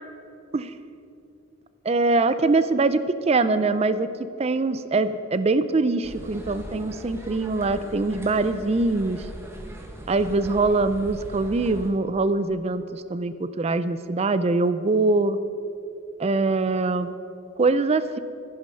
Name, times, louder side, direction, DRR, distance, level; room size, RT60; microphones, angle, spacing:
voice 1, 1.8-3.0 3.3-4.1 4.4-9.3 10.1-15.4 16.2-17.2 17.6-18.2, right 3 dB, 30° right, 13 dB, 0.4 m, -23 dB
sound 1, 6.0-11.9, right 1 dB, 10° right, 1.1 m, -40 dB
10.5 x 10.5 x 5.6 m, 2.6 s
head